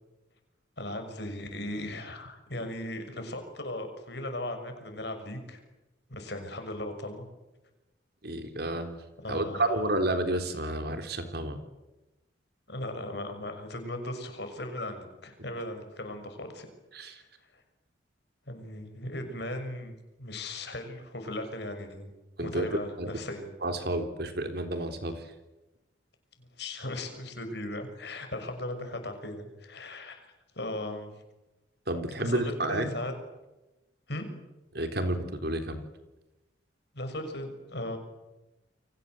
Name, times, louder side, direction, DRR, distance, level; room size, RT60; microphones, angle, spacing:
voice 1, 0.8-5.6 6.1-7.2 9.2-9.9 12.7-16.7 17.5-17.6 18.5-22.1 22.4-23.5 26.4-30.2 30.5-31.1 32.2-33.1 34.1-34.3 36.9-38.0, left 1 dB, 60° left, 6 dB, 6.3 m, -37 dB
voice 2, 8.2-9.0 9.3-11.6 16.9-17.2 22.4-23.1 23.6-25.2 31.9-32.9 34.7-35.8, right 1 dB, 55° right, 7 dB, 3.7 m, -30 dB
29.5 x 24.5 x 7.9 m, 1.0 s
head